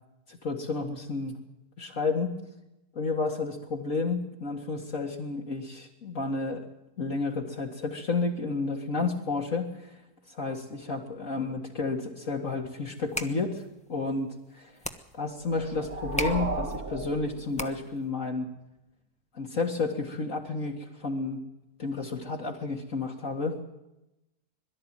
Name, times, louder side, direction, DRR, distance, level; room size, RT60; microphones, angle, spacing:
voice 1, 0.3-1.4 1.8-2.4 3.0-6.6 7.0-9.9 10.3-13.6 13.9-14.3 14.5-14.8 15.1-18.5 19.3-21.4 21.8-23.7, left 3 dB, 55° left, -1 dB, 2.3 m, -31 dB
sound 1, 12.9-18.1, left 1 dB, 5° left, 1.0 m, -40 dB
sound 2, 15.4-18.0, right 2 dB, 65° right, 2.7 m, -35 dB
22.5 x 13.0 x 9.1 m, 0.92 s
omnidirectional pair, 1.7 m